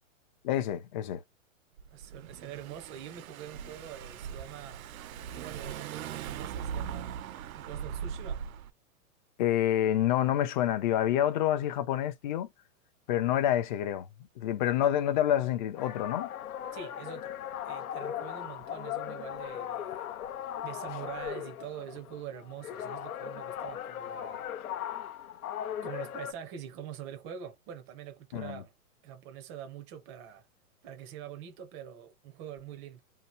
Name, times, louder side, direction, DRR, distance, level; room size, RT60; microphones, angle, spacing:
voice 1, 0.4-1.2 9.4-12.5 13.1-14.1 14.4-16.3 28.3-28.6, left 11 dB, 35° left, 0.5 m, -28 dB
Car / Engine, 1.8-8.7, right 8 dB, 75° right, 0.6 m, -40 dB
voice 2, 1.9-4.8 5.3-7.2 7.5-8.4 16.7-20.1 20.6-24.5 25.8-28.7 29.0-30.5 30.8-33.0, right 9 dB, 20° right, 0.5 m, -44 dB
sound 1, 15.8-26.3, left 10 dB, 90° left, 0.7 m, -38 dB
2.8 x 2.1 x 3.0 m
hypercardioid pair, 145°, 42 cm